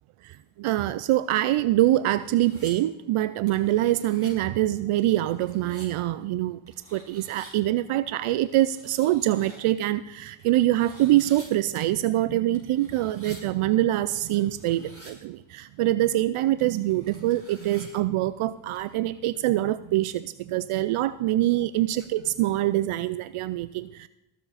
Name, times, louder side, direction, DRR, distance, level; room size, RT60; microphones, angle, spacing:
voice 1, 0.2-6.6 6.9-24.1, right 14 dB, 80° right, 15 dB, 0.6 m, -24 dB
sound 1, 1.9-2.7 3.5-4.3 5.0-5.9 6.7-7.5 8.3-9.6 10.5-11.5 11.8-11.9 12.5-13.4 14.1-15.1 16.2-16.3 16.6-17.9 18.7-18.9, right 1 dB, 30° right, 5.8 m, -50 dB
21.0 x 7.5 x 4.1 m, 0.90 s
cardioid pair, 65°, 50 cm